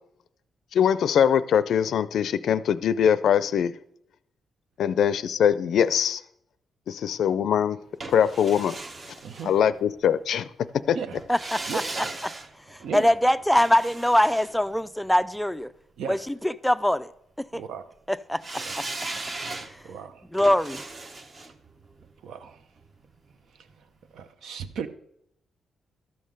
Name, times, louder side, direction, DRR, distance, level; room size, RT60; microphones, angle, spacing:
voice 1, 0.7-3.7 4.8-6.2 6.9-7.8 8.1-8.8 9.4-10.5 10.9-11.0, left 8 dB, 70° left, 0.4 m, -22 dB
sound 1, 8.0-10.1 11.2-15.4 18.4-23.4 23.7-23.8, right 2 dB, 30° right, 0.8 m, -38 dB
voice 2, 9.2-9.5 10.9-11.2 11.7-11.8 12.8-13.0 16.0-16.2 17.5-17.8 18.6-18.8 19.8-20.2 22.2-22.6 24.1-24.9, right 6 dB, 75° right, 0.7 m, -35 dB
voice 3, 11.3-12.3 12.7-15.7 16.1-17.1 17.5-17.6 18.1-18.4 20.3-20.8, left 1 dB, 5° left, 0.3 m, -23 dB
12.5 x 5.5 x 6.5 m
cardioid pair, 120°, 0 cm